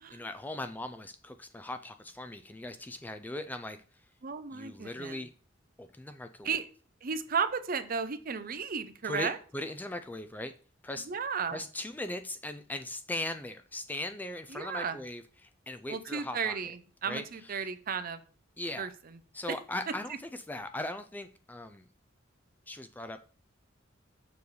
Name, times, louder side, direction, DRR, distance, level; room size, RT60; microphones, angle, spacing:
voice 1, 0.1-3.8 4.5-5.3 5.8-6.5 9.0-10.5 10.8-11.1 11.5-16.6 17.1-17.7 18.6-18.9 19.3-21.8 22.7-23.2, left 1 dB, 10° left, 8 dB, 0.3 m, -39 dB
voice 2, 4.2-5.2 6.4-6.7 7.0-9.4 11.1-11.6 14.5-15.0 15.9-18.2 18.8-19.2 19.5-19.6, right 6 dB, 45° right, 11 dB, 0.6 m, -34 dB
6.9 x 3.2 x 5.3 m, 0.40 s
head